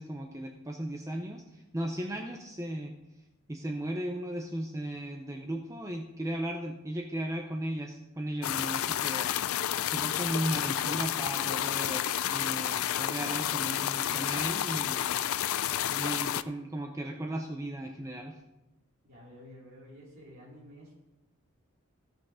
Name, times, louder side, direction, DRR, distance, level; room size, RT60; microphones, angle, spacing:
voice 1, 0.0-2.9 3.5-9.4 9.6-15.3 15.6-18.4, right 1 dB, 15° right, 2 dB, 0.6 m, -36 dB
sound 1, 8.4-16.4, left 11 dB, 75° left, 0.4 m, -30 dB
voice 2, 19.0-21.0, equal, 45° right, -9 dB, 3.5 m, -51 dB
15.0 x 6.1 x 5.0 m, 0.96 s
head